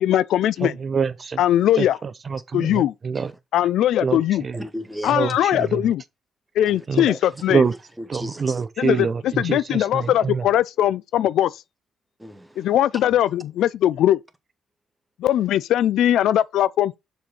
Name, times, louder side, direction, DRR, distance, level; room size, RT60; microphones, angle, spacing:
voice 1, 0.0-0.7 1.4-2.0 2.5-2.9 3.5-4.4 5.0-6.0 6.6-7.6 8.8-9.1 9.4-11.5 12.6-14.2 15.2-17.0, left 12 dB, 80° left, 0.4 m, -20 dB
voice 2, 0.6-1.4 1.8-3.3 4.0-4.6 5.1-5.8 6.9-7.1 7.5-7.7 8.1-10.5, right 5 dB, 40° right, 0.7 m, -25 dB
voice 3, 4.5-5.7 6.7-7.2 7.5-8.7 10.0-10.1 12.2-13.0 15.3-15.5, equal, 5° right, 1.2 m, -37 dB
6.8 x 4.6 x 4.3 m
cardioid pair, 90°, 0 cm